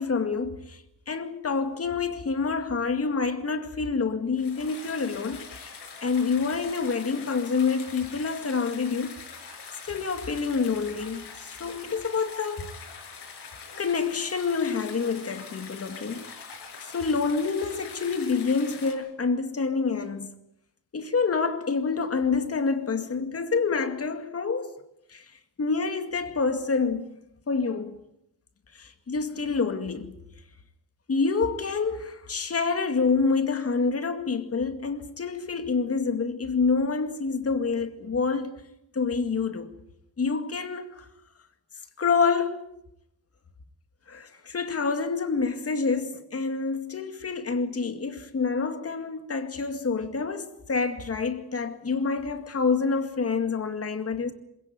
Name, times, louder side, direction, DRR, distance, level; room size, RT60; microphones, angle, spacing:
voice 1, 0.0-5.7 6.0-9.1 9.8-12.7 13.8-20.4 20.9-24.8 25.1-25.3 25.6-27.2 27.5-28.0 28.7-30.2 31.1-38.6 38.9-39.8 40.2-41.1 42.0-42.8 44.1-54.3, left 4 dB, 35° left, 2.2 m, -27 dB
sound 1, 4.4-18.9, left 5 dB, 80° left, 7.8 m, -43 dB
26.5 x 17.5 x 9.4 m
wide cardioid pair, 150°, 40 cm